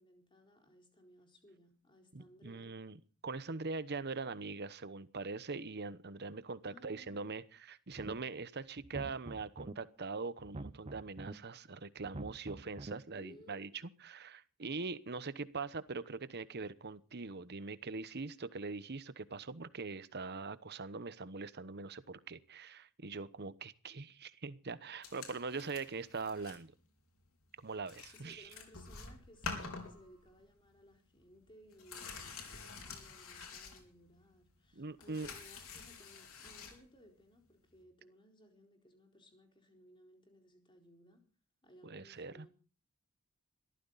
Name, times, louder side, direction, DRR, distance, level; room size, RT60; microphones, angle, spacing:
voice 1, 0.0-2.7 3.5-3.6 6.6-7.4 13.1-13.8 28.1-41.2 41.6-42.5, equal, 20° left, 3 dB, 4.2 m, -61 dB
voice 2, 2.1-26.7 27.6-28.4 34.8-35.3 41.8-42.5, right 4 dB, 50° right, 15 dB, 1.0 m, -42 dB
sound 1, 7.9-8.4 8.8-9.7 10.4-11.3 12.0-12.9, right 2 dB, 30° right, 0.7 m, -46 dB
sound 2, 25.0-26.6 27.0-27.2 27.6-27.7 27.9-30.5 30.8-30.9 31.2-34.3 34.6-36.8 37.8-37.9, left 4 dB, 70° left, 4.3 m, -48 dB
21.5 x 14.0 x 4.1 m, 0.36 s
head